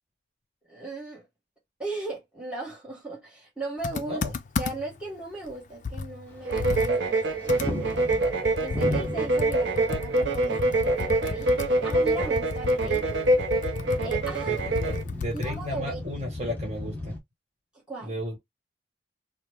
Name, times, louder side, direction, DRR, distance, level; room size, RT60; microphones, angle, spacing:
voice 1, 0.7-1.3 1.8-4.2 4.6-8.3 8.6-13.2 14.0-14.6 15.3-16.0 17.7-18.2, right 2 dB, 5° right, 1.2 m, -37 dB
Computer keyboard, 3.8-5.0 5.4-5.5 5.8-15.7, left 4 dB, 45° left, 0.4 m, -34 dB
sound 1, 6.3-17.2, left 1 dB, 10° left, 0.6 m, -37 dB
sound 2, 6.5-15.0, right 2 dB, 80° right, 0.6 m, -25 dB
voice 2, 14.5-17.1 18.0-18.4, equal, 35° right, 1.2 m, -34 dB
2.9 x 2.1 x 3.2 m
head